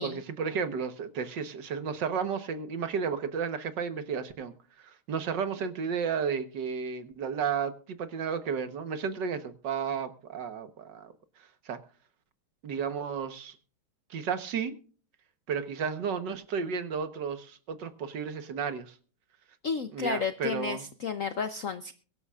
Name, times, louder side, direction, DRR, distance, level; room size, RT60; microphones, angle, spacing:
voice 1, 0.0-11.1 11.4-11.8 12.6-13.6 14.1-14.7 15.5-19.0 19.9-20.8, right 6 dB, 60° right, 10 dB, 1.7 m, -33 dB
voice 2, 19.6-21.9, left 6 dB, 65° left, 9 dB, 0.8 m, -32 dB
23.5 x 11.0 x 2.4 m, 0.41 s
omnidirectional pair, 2.3 m